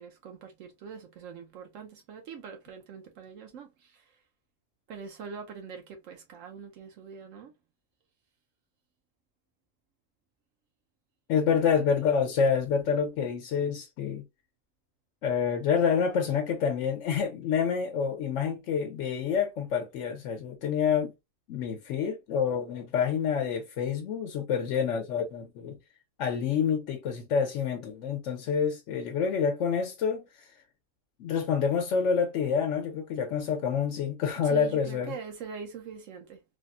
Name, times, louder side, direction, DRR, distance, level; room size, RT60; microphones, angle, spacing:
voice 1, 0.0-4.2 4.9-7.5 34.4-36.4, right 6 dB, 80° right, 1.0 m, -43 dB
voice 2, 11.3-14.2 15.2-21.1 21.5-25.8 26.2-30.2 31.2-35.1, left 7 dB, 75° left, 0.9 m, -27 dB
3.5 x 2.0 x 2.4 m
omnidirectional pair, 1.3 m